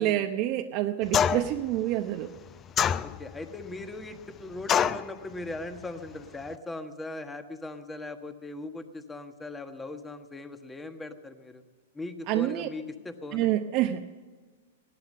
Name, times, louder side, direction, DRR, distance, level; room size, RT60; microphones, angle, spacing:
voice 1, 0.0-2.3 12.3-12.7 13.3-14.2, right 13 dB, 45° right, 5 dB, 0.8 m, -27 dB
sound 1, 1.1-1.6 2.8-3.4 4.7-5.1, left 8 dB, 25° left, 0.5 m, -25 dB
voice 2, 3.0-11.6 11.9-13.5, left 2 dB, 10° left, 7 dB, 1.3 m, -39 dB
17.5 x 11.5 x 6.6 m, 1.4 s
hypercardioid pair, 125°, 0 cm